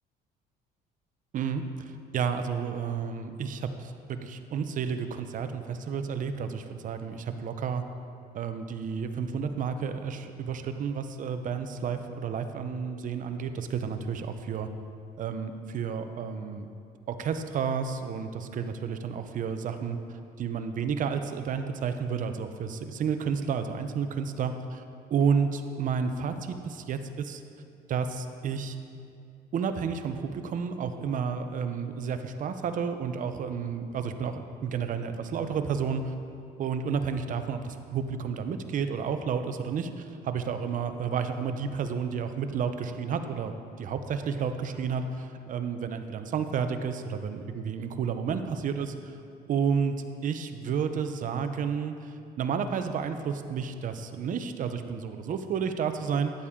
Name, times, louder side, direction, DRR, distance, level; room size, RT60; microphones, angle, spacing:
voice 1, 1.3-7.8 8.3-14.7 15.2-16.7 17.1-20.0 20.4-24.8 25.1-27.4 27.9-28.8 29.5-36.1 36.6-48.9 49.5-56.3, right 6 dB, 50° right, 8 dB, 0.7 m, -31 dB
13.0 x 8.7 x 3.7 m, 2.5 s
cardioid pair, 110°, 17 cm